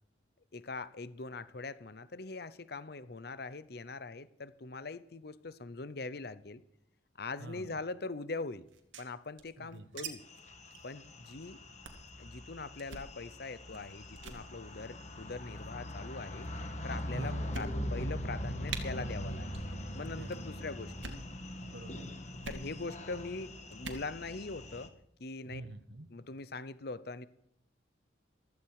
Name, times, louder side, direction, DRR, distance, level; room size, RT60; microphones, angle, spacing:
voice 1, 0.5-6.6 7.2-8.7 9.0-10.2 10.8-11.6 12.2-16.5 16.8-19.6 19.9-21.1 22.5-24.9 25.2-25.6 26.1-27.3, left 3 dB, 55° left, 0.7 m, -42 dB
voice 2, 7.4-7.8 9.6-10.1 17.1-17.6 20.0-20.5 21.6-22.6 25.4-26.1, right 2 dB, 65° right, 1.3 m, -47 dB
sound 1, 8.7-10.1 10.3-10.4 10.7-10.9 11.2-11.4 11.8-12.1 12.8-13.1 13.7-13.9 14.2-14.4 15.3-15.7 16.4-16.5 17.0-17.1 17.5-18.1 18.3-18.4 18.7-18.8 19.5-19.7 20.0-20.4 20.9-21.3 22.4-22.6 23.7-24.1, right 4 dB, 90° right, 2.2 m, -44 dB
sound 2, 10.3-24.9, equal, 35° left, 1.5 m, -41 dB
15.5 x 14.5 x 4.8 m
head